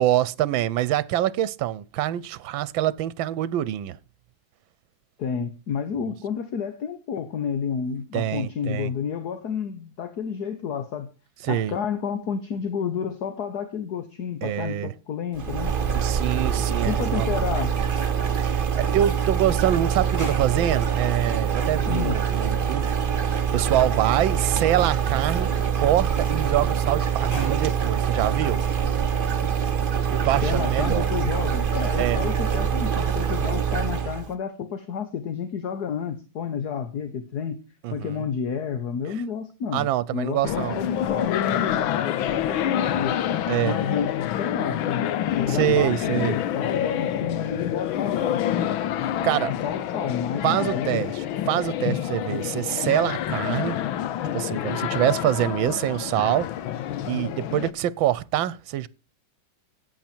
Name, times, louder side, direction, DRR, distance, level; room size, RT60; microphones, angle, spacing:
voice 1, 0.0-4.0 8.1-8.9 11.4-11.7 14.4-14.9 16.0-17.3 18.3-22.9 23.5-28.6 30.1-31.1 32.0-32.2 37.8-38.2 39.7-40.8 43.5-43.7 45.5-46.3 49.2-49.6 50.4-53.8 54.3-56.5 57.0-58.9, right 12 dB, 80° right, 1.5 m, -25 dB
voice 2, 5.2-11.1 11.5-15.7 16.8-17.8 21.9-22.2 30.4-37.6 37.9-43.2 43.6-48.5 49.6-50.9 55.6-55.7, left 7 dB, 55° left, 1.6 m, -30 dB
sound 1, 15.3-34.3, right 7 dB, 35° right, 1.1 m, -24 dB
sound 2, 17.9-18.5 18.9-20.8 21.2-21.8 22.3-22.7 23.1-23.2 23.8-23.9 24.6-24.7 25.1-25.8 26.2-27.6 28.0-28.7 29.1-29.5, left 1 dB, 10° left, 5.8 m, -43 dB
sound 3, 40.4-57.7, left 10 dB, 90° left, 1.7 m, -27 dB
14.0 x 9.1 x 4.5 m
omnidirectional pair, 2.1 m